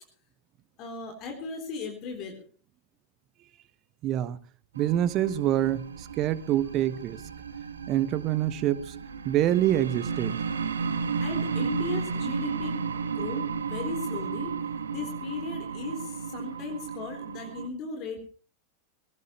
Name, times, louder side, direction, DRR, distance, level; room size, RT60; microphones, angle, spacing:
voice 1, 0.8-2.4 11.2-12.9 13.1-14.6 14.9-18.2, left 4 dB, 40° left, 3.9 m, -37 dB
voice 2, 4.0-4.4 4.8-7.2 7.9-8.9 9.2-10.4, right 12 dB, 35° right, 1.1 m, -26 dB
sound 1, 4.7-17.7, right 6 dB, 70° right, 1.6 m, -33 dB
21.5 x 18.0 x 3.2 m
figure-of-eight pair, 90°, 0 cm